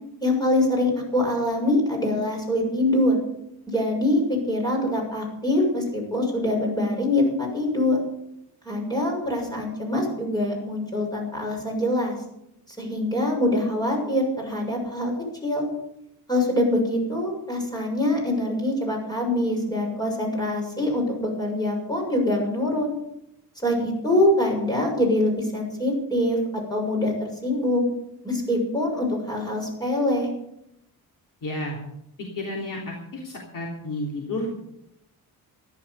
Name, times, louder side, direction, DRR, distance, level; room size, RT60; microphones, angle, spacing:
voice 1, 0.2-3.2 3.7-8.0 8.6-12.2 12.8-15.1 15.4-15.6 16.3-22.9 23.6-26.4 26.7-27.9 28.2-30.3, left 1 dB, 10° left, 0 dB, 7.0 m, -24 dB
voice 2, 31.4-31.8 32.2-34.6, left 1 dB, 60° left, -1 dB, 3.3 m, -31 dB
14.5 x 11.5 x 6.9 m, 0.80 s
cardioid pair, 135°, 37 cm